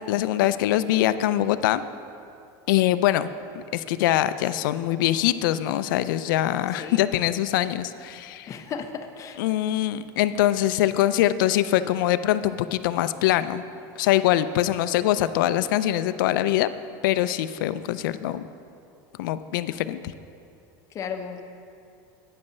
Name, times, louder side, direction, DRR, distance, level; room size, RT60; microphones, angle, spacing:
voice 1, 0.1-1.8 2.7-3.3 3.5-8.5 9.4-13.6 14.0-16.7 17.0-18.5 19.2-20.0, left 13 dB, 80° left, 14 dB, 0.4 m, -23 dB
voice 2, 8.5-9.4 20.9-21.4, left 6 dB, 30° left, 6 dB, 0.7 m, -34 dB
9.2 x 5.4 x 7.0 m, 2.6 s
supercardioid pair, 140°, 11 cm